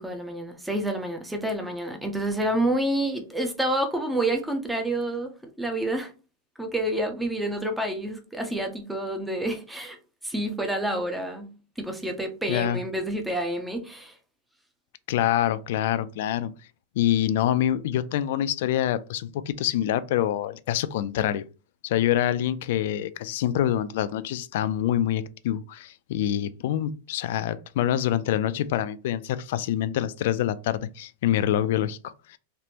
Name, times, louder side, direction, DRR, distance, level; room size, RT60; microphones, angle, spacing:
voice 1, 0.0-6.1 6.6-10.0 10.2-11.5 11.8-14.2, right 1 dB, 5° right, 0.5 m, -28 dB
voice 2, 12.5-12.8 15.1-16.5 17.0-21.4 21.8-32.4, left 11 dB, 60° left, 0.3 m, -26 dB
3.3 x 2.5 x 2.8 m
supercardioid pair, 160°, 0 cm